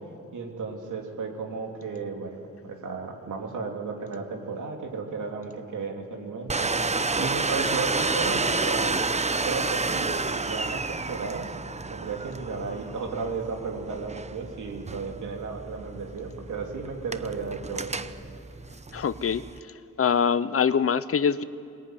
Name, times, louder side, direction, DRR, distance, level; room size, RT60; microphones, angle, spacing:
voice 1, 0.3-6.7 7.2-9.0 9.5-11.6 11.9-18.1, right 4 dB, 85° right, 1 dB, 3.5 m, -34 dB
Domestic sounds home sounds, 6.5-19.6, right 3 dB, 25° right, 0.9 m, -30 dB
voice 2, 18.9-19.4 20.0-21.4, left 7 dB, 50° left, 15 dB, 0.8 m, -23 dB
21.0 x 21.0 x 9.6 m, 2.6 s
cardioid pair, 65°, 30 cm